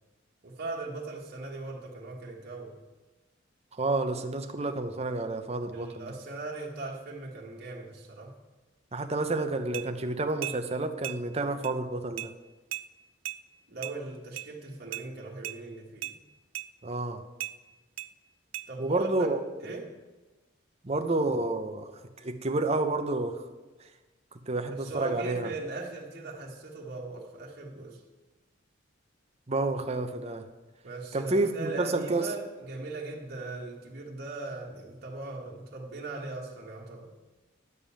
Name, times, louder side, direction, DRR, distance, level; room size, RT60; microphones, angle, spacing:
voice 1, 0.4-2.8 5.7-8.3 13.7-16.1 18.7-19.3 19.6-19.9 24.7-28.0 30.8-37.1, right 2 dB, 50° right, -3 dB, 1.7 m, -39 dB
voice 2, 3.7-6.1 8.9-12.3 16.8-17.2 18.8-19.4 20.8-21.9 22.2-23.4 24.3-25.5 29.5-30.5 31.1-32.3, right 2 dB, 30° right, 7 dB, 0.8 m, -29 dB
sound 1, 9.7-9.9 10.4-10.6 11.0-11.2 11.6-11.7 12.2-12.3 12.7-12.9 13.2-13.4 13.8-14.0 14.4-14.5 14.9-15.1 15.4-15.6 16.0-16.2 16.5-16.7 17.4-17.5 18.0-18.1 18.5-18.7, right 13 dB, 80° right, 0.5 m, -36 dB
11.0 x 5.4 x 8.6 m, 1.2 s
head